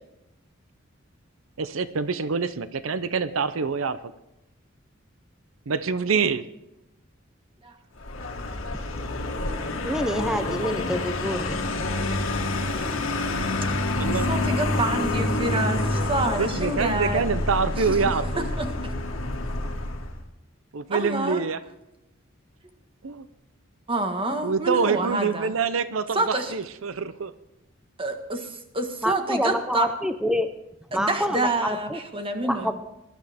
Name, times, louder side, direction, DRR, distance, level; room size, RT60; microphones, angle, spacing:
voice 1, 1.6-4.0 5.7-6.4 14.0-14.3 16.4-18.4 20.7-21.6 23.0-23.3 24.4-26.2 26.5-27.3 32.6-32.7, right 5 dB, 85° right, 13 dB, 0.7 m, -25 dB
Vehicle, 8.0-20.2, left 2 dB, 85° left, 1.8 m, -28 dB
voice 2, 9.8-11.6 29.0-30.5 30.9-32.0 32.4-32.8, equal, 5° right, 8 dB, 0.5 m, -27 dB
voice 3, 14.1-17.3 17.7-18.9 20.9-21.4 23.9-25.5 26.1-26.6 28.0-29.9 30.9-32.8, right 2 dB, 25° right, 5 dB, 1.5 m, -28 dB
20.0 x 11.5 x 3.5 m, 0.90 s
head